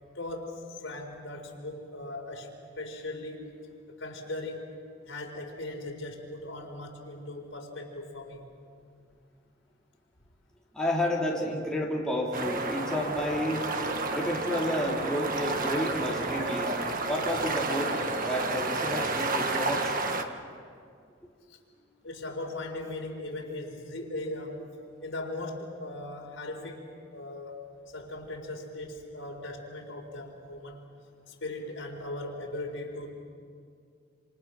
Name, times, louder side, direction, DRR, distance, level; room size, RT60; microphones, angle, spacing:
voice 1, 0.1-3.5 3.9-4.7 5.1-8.5 21.5-24.7 25.0-30.8 31.3-33.1, left 2 dB, 75° left, 1 dB, 4.3 m, -39 dB
voice 2, 10.7-13.7 14.1-19.9, left 1 dB, 5° left, -4 dB, 3.1 m, -31 dB
sound 1, 12.3-20.2, right 3 dB, 45° right, 1.6 m, -31 dB
28.0 x 27.5 x 6.0 m, 2.3 s
head